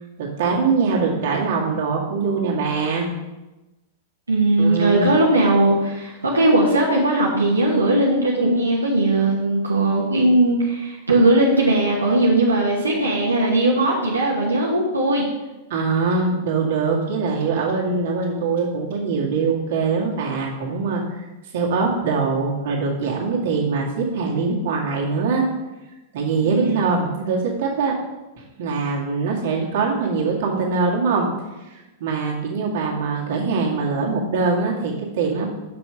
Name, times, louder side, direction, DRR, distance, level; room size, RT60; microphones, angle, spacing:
voice 1, 0.2-3.1 4.6-5.1 15.7-21.2 21.5-25.4 26.1-28.0 28.6-31.3 32.0-35.5, right 4 dB, 60° right, -2 dB, 2.0 m, -22 dB
voice 2, 4.3-15.2 26.4-26.9, right 1 dB, 90° right, -3 dB, 1.4 m, -19 dB
6.8 x 6.0 x 5.0 m, 1.1 s
hypercardioid pair, 100°, 0 cm